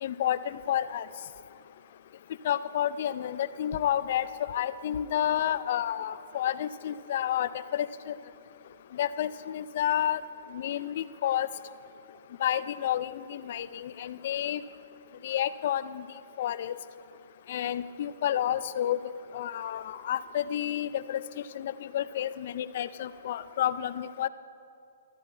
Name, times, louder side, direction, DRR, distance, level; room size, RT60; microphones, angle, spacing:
voice 1, 0.0-1.1 2.4-8.1 8.9-10.2 10.5-11.5 12.4-14.6 15.2-16.0 16.4-16.7 17.5-19.0 19.3-24.3, left 11 dB, 55° left, 14 dB, 0.5 m, -30 dB
13.5 x 12.0 x 4.4 m, 2.5 s
hypercardioid pair, 145°, 0 cm